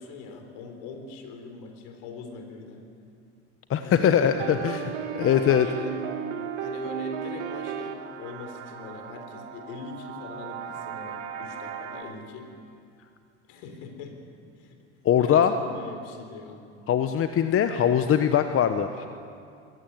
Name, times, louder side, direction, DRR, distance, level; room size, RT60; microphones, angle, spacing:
voice 1, 0.0-2.9 3.8-4.6 5.3-6.0 6.6-12.5 13.5-14.2 14.5-14.8 15.2-16.6, left 4 dB, 65° left, 5 dB, 3.9 m, -41 dB
voice 2, 3.7-4.8 5.1-5.7 15.0-15.5 16.9-19.1, left 9 dB, 40° left, 8 dB, 1.1 m, -21 dB
sound 1, 4.2-12.0, right 8 dB, 80° right, 2.3 m, -35 dB
21.5 x 16.0 x 9.5 m, 2.3 s
hypercardioid pair, 85°, 36 cm